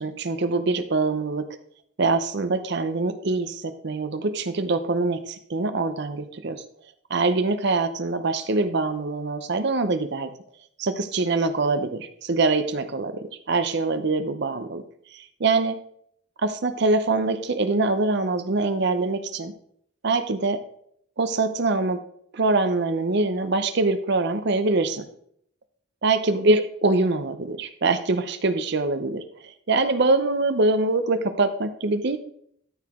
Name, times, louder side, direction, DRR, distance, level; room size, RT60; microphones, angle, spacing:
voice 1, 0.0-1.5 2.0-6.6 7.1-10.3 10.8-14.8 15.1-15.8 16.4-19.5 20.0-20.6 21.2-22.0 22.3-25.0 26.0-32.2, right 3 dB, 60° right, 10 dB, 0.7 m, -24 dB
13.0 x 4.9 x 3.6 m, 0.67 s
head